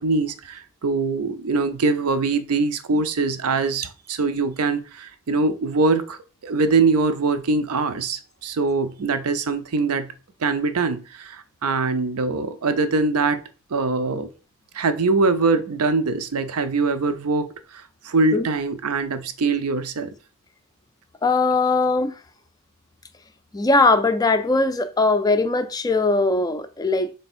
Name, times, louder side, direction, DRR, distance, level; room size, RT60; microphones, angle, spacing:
voice 1, 0.0-10.1 10.4-13.4 13.7-14.3 14.7-20.1, right 3 dB, 75° right, 0.5 m, -23 dB
voice 2, 21.2-22.1 23.5-27.1, left 3 dB, 15° left, 0.3 m, -20 dB
3.4 x 3.3 x 4.2 m
head